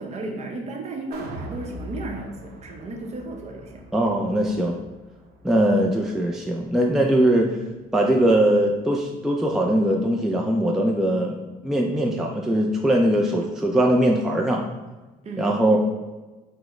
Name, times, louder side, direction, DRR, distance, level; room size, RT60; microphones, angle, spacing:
voice 1, 0.0-3.9 15.2-15.8, right 2 dB, 40° right, 2 dB, 0.7 m, -34 dB
sound 1, 1.1-7.3 7.7-7.8, equal, 70° right, 0.7 m, -42 dB
voice 2, 3.9-4.8 5.4-7.5 7.9-11.4 11.6-14.6 15.4-15.8, right 1 dB, 5° right, 0 dB, 0.3 m, -21 dB
4.9 x 2.0 x 3.6 m, 1.2 s
cardioid pair, 110°, 17 cm